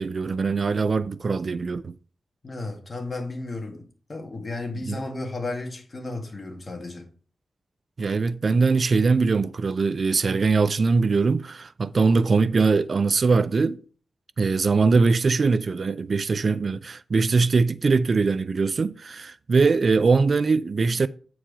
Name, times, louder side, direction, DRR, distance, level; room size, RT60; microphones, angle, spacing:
voice 1, 0.0-1.9 4.9-5.0 8.0-13.8 14.4-21.1, right 4 dB, 50° right, 0.3 m, -22 dB
voice 2, 2.4-7.1, left 2 dB, 35° left, 1.9 m, -33 dB
8.8 x 4.7 x 5.0 m
wide cardioid pair, 105°, 0 cm